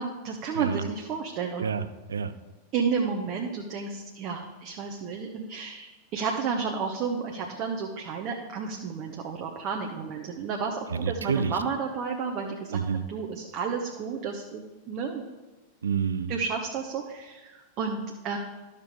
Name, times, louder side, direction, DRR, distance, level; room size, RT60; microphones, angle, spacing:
voice 1, 0.0-1.7 2.7-12.8 13.1-15.2 16.3-18.4, right 5 dB, 40° right, 1 dB, 1.0 m, -32 dB
voice 2, 1.6-2.3 10.9-11.6 12.7-13.1 15.8-16.3, right 6 dB, 70° right, 12 dB, 0.5 m, -29 dB
12.0 x 6.7 x 3.6 m, 1.1 s
figure-of-eight pair, 90°, 0 cm